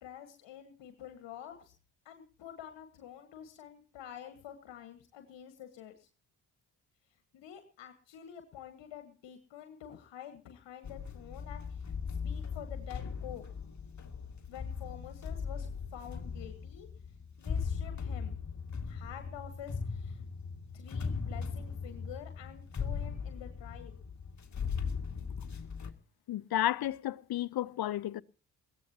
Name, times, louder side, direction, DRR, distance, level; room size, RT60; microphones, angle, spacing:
voice 1, 0.0-1.7 2.1-6.1 7.3-13.4 14.5-16.9 17.4-18.4 18.9-20.2 20.7-24.0, left 10 dB, 70° left, 1.7 m, -48 dB
sound 1, 10.8-25.9, left 5 dB, 40° left, 2.2 m, -38 dB
voice 2, 26.3-28.2, left 13 dB, 55° left, 0.8 m, -32 dB
21.5 x 16.5 x 2.8 m
hypercardioid pair, 45°, 45 cm